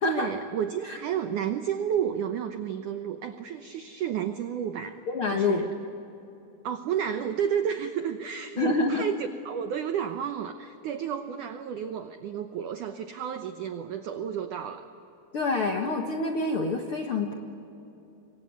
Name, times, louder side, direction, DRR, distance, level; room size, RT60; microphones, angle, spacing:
voice 1, 0.0-5.0 5.3-5.7 6.6-9.2 9.5-14.9, right 8 dB, 85° right, 7 dB, 1.7 m, -31 dB
voice 2, 5.1-5.6 8.6-9.0 15.3-17.3, left 3 dB, 90° left, 3 dB, 1.2 m, -27 dB
26.5 x 23.5 x 9.4 m, 3.0 s
omnidirectional pair, 5.1 m